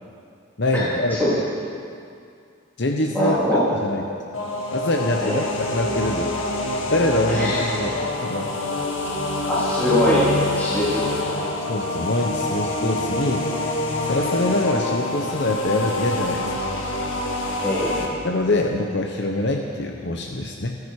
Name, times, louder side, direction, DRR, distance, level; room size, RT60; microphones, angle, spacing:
voice 1, 0.6-1.4 2.8-4.0 4.7-6.3 6.9-8.6 11.7-13.5 14.0-16.5 18.2-20.8, left 2 dB, 55° left, 2 dB, 1.0 m, -24 dB
voice 2, 3.1-3.6 5.2-5.4 7.3-7.6 9.4-10.3 10.6-11.3 17.6-18.1, left 1 dB, 10° left, -11 dB, 3.8 m, -22 dB
sound 1, 4.3-18.1, left 1 dB, 70° left, 1.9 m, -26 dB
29.0 x 9.7 x 4.9 m, 2.3 s
head